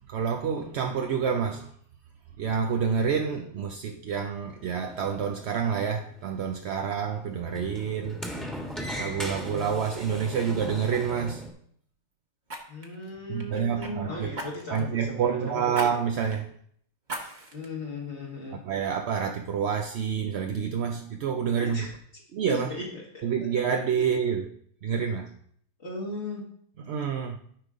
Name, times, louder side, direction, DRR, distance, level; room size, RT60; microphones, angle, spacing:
voice 1, 0.1-1.7 2.4-8.2 8.8-11.5 13.3-14.3 14.7-16.5 18.5-21.9 22.3-22.7 23.2-24.5 24.8-25.3 26.8-27.4, right 7 dB, 70° right, 0.9 m, -28 dB
Sliding door, 4.5-11.5, equal, ahead, 1.4 m, -39 dB
Fire, 10.3-10.5 12.5-13.9 14.3-14.9 15.7-15.9 16.3-16.4 17.0-17.7 18.2-18.3, right 2 dB, 40° right, 1.4 m, -38 dB
voice 2, 12.7-15.7 17.5-18.6 21.5-21.9 22.5-23.0 25.8-26.4, left 2 dB, 70° left, 2.1 m, -37 dB
13.0 x 5.4 x 3.7 m
omnidirectional pair, 1.2 m